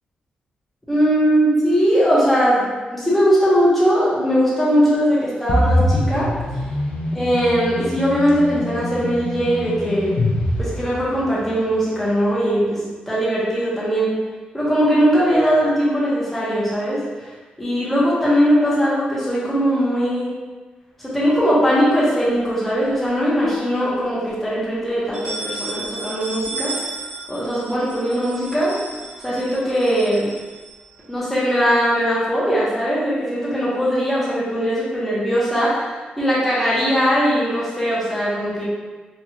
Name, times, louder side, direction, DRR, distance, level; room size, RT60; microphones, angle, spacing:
voice 1, 0.9-6.3 7.1-10.1 10.6-14.2 14.5-17.3 17.6-20.3 21.0-26.7 27.3-28.8 29.2-30.3 31.1-35.9 36.2-38.6, equal, 5° left, -9 dB, 0.7 m, -20 dB
sound 1, 5.5-11.5, left 1 dB, 45° left, 0.5 m, -24 dB
sound 2, 22.5-23.4 23.8-23.9 24.3-24.4 24.9-31.1, right 3 dB, 45° right, 0.5 m, -34 dB
3.0 x 2.3 x 2.8 m, 1.3 s
wide cardioid pair, 175°, 3 cm